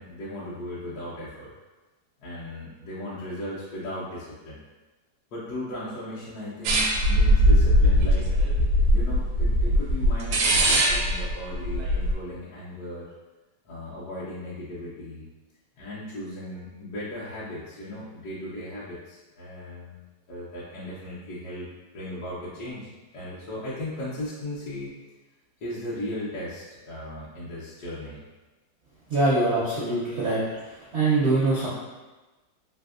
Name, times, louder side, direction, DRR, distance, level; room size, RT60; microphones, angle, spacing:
voice 1, 0.0-1.5 2.2-4.6 5.3-8.3 8.9-13.1 13.6-15.2 15.8-21.7 21.9-24.9 25.6-28.2, left 1 dB, 65° left, -9 dB, 1.1 m, -37 dB
sound 1, 6.6-12.1, equal, 85° right, 1.3 m, -20 dB
voice 2, 29.1-31.7, right 2 dB, 70° right, -8 dB, 0.6 m, -24 dB
3.3 x 2.6 x 2.4 m, 1.2 s
omnidirectional pair, 2.0 m